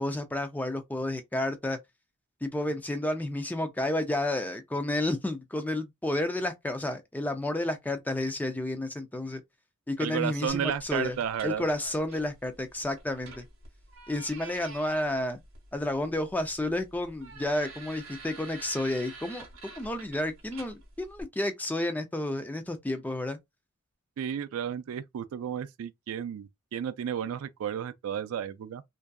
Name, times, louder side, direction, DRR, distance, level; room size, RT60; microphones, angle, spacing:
voice 1, 0.0-1.8 2.4-9.4 9.9-11.2 11.4-13.5 14.1-15.4 15.7-19.5 19.8-23.4, left 1 dB, 10° left, 0.3 m, -31 dB
voice 2, 10.0-11.7 24.2-28.8, right 8 dB, 80° right, 0.3 m, -33 dB
sound 1, 10.5-21.2, right 3 dB, 65° right, 0.9 m, -48 dB
2.6 x 2.2 x 2.2 m
head